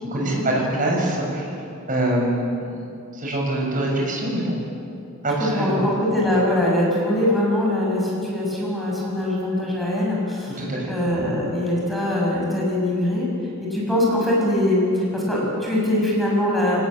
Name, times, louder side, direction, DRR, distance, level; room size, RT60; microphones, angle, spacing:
voice 1, 0.0-1.5 1.9-2.8 3.1-4.6 5.2-5.8 10.5-10.9, right 1 dB, 40° right, -1 dB, 6.7 m, -24 dB
voice 2, 5.4-13.3 13.6-16.8, left 1 dB, ahead, -4 dB, 6.6 m, -22 dB
25.0 x 19.0 x 8.9 m, 2.5 s
head